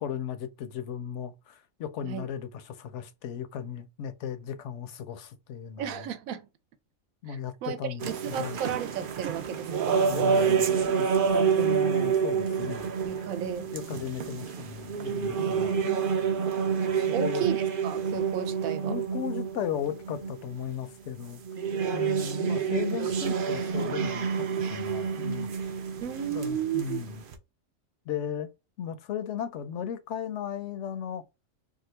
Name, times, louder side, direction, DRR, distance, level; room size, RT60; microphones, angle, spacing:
voice 1, 0.0-6.1 7.2-8.6 10.1-10.7 11.0-11.3 11.6-12.9 13.7-15.8 17.1-17.5 18.9-21.4 21.9-25.5 26.3-27.2 28.1-28.5 28.8-31.2, left 8 dB, 70° left, 0.8 m, -36 dB
voice 2, 5.8-6.5 7.3-7.8 8.0-9.9 11.3-11.7 13.0-13.7 15.4-16.3 17.1-18.9 26.0-27.0, right 10 dB, 85° right, 1.0 m, -34 dB
sound 1, 8.0-20.7 21.2-27.3, right 6 dB, 60° right, 0.6 m, -28 dB
2.7 x 2.3 x 4.2 m
omnidirectional pair, 1.4 m